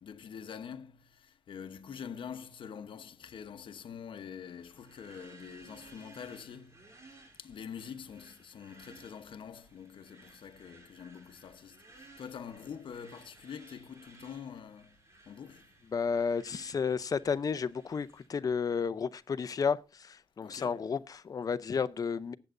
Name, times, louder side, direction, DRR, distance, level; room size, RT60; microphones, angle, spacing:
voice 1, 0.0-6.9 7.4-15.0 15.3-15.7 20.4-20.9, left 7 dB, 70° left, 0.9 m, -45 dB
sound 1, 4.4-18.3, right 2 dB, 35° right, 3.1 m, -58 dB
voice 2, 15.9-22.3, left 6 dB, 45° left, 0.6 m, -32 dB
19.0 x 7.9 x 2.6 m
wide cardioid pair, 145°, 9 cm